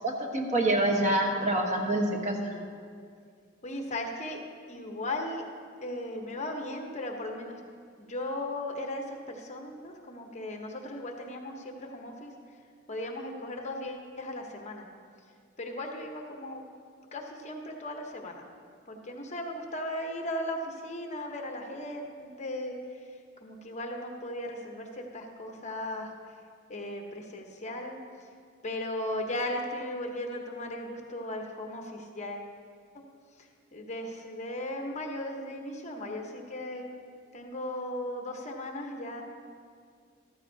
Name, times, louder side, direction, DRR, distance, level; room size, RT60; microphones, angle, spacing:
voice 1, 0.0-2.5, right 1 dB, 35° right, 1 dB, 1.2 m, -26 dB
voice 2, 3.6-4.4 4.7-5.4 5.8-7.6 8.0-12.3 12.9-14.8 15.6-16.6 17.1-18.4 18.9-22.8 23.4-26.1 26.7-28.0 28.6-32.5 33.7-36.8 37.3-39.2, left 1 dB, 35° left, 2 dB, 1.0 m, -37 dB
14.0 x 13.5 x 2.8 m, 2.2 s
head